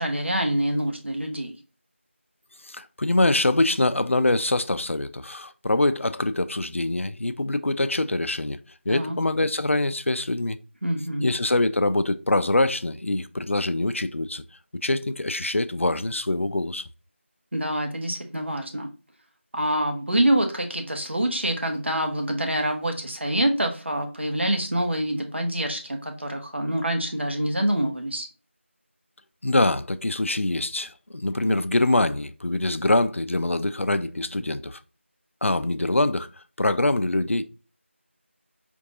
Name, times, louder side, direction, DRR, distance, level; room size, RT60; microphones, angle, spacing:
voice 1, 0.0-1.6 8.9-9.2 10.8-11.3 17.5-18.9 19.5-28.3, right 1 dB, 60° right, 0.8 m, -26 dB
voice 2, 2.6-8.6 8.9-10.6 11.2-14.4 14.8-16.8 29.4-34.8 35.4-36.3 36.6-37.4, left 2 dB, 75° left, 0.4 m, -24 dB
4.5 x 2.6 x 2.7 m
figure-of-eight pair, 175°, 7 cm